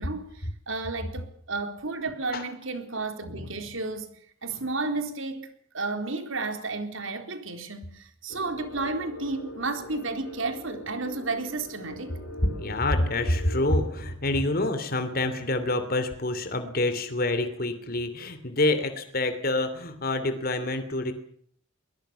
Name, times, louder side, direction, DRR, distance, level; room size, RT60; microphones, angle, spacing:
voice 1, 0.0-4.1 4.4-5.5 5.7-12.1, right 3 dB, 70° right, 4.0 m, -32 dB
sound 1, 8.3-14.1, left 2 dB, 85° left, 6.1 m, -42 dB
voice 2, 12.6-21.1, left 2 dB, 45° left, 3.1 m, -27 dB
22.5 x 20.5 x 7.1 m
head